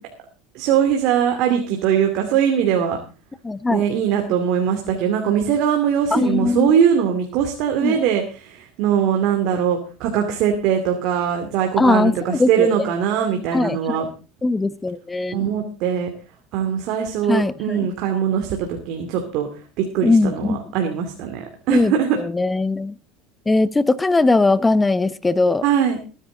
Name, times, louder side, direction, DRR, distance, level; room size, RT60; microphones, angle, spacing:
voice 1, 0.5-3.0 3.7-14.1 15.3-16.1 16.5-19.5 19.8-22.2 25.6-26.0, right 8 dB, 65° right, 3 dB, 2.6 m, -21 dB
voice 2, 3.4-3.8 6.1-6.7 7.8-8.0 11.8-12.7 13.5-14.1 14.4-15.4 17.3-17.9 20.0-20.6 21.7-22.9 23.5-25.6, left 3 dB, 15° left, 16 dB, 0.9 m, -20 dB
20.0 x 10.0 x 3.9 m, 0.34 s
supercardioid pair, 100°, 0 cm